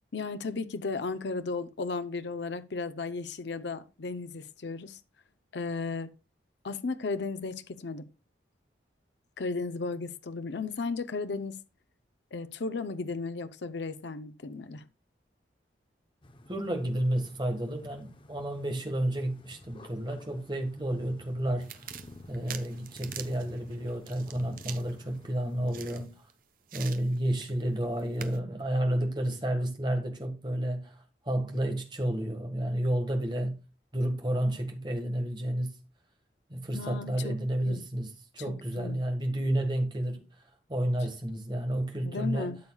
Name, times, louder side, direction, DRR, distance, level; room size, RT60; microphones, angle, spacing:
voice 1, 0.1-5.0 5.5-6.1 6.6-8.1 9.4-11.6 12.3-14.8 36.7-37.3 37.7-37.8 38.5-39.0 42.0-42.6, left 4 dB, 80° left, 0.6 m, -35 dB
sound 1, 16.2-26.0, left 1 dB, 30° left, 0.8 m, -51 dB
voice 2, 16.5-21.8 22.3-26.3 26.7-33.5 33.9-35.8 36.5-42.5, right 1 dB, 25° right, 1.5 m, -31 dB
sound 2, 21.6-26.3 26.7-27.5 27.8-28.4, right 9 dB, 50° right, 0.7 m, -45 dB
12.5 x 7.1 x 2.3 m
head